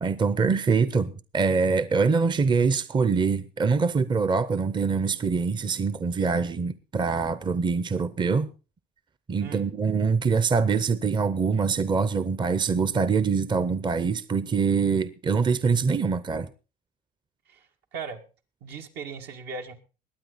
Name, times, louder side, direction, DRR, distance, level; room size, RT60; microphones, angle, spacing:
voice 1, 0.0-8.5 9.3-16.5, right 5 dB, 25° right, 0.7 m, -24 dB
voice 2, 17.5-18.2 18.6-19.7, right 5 dB, 75° right, 2.1 m, -38 dB
21.0 x 9.1 x 4.0 m
cardioid pair, 110°, 17 cm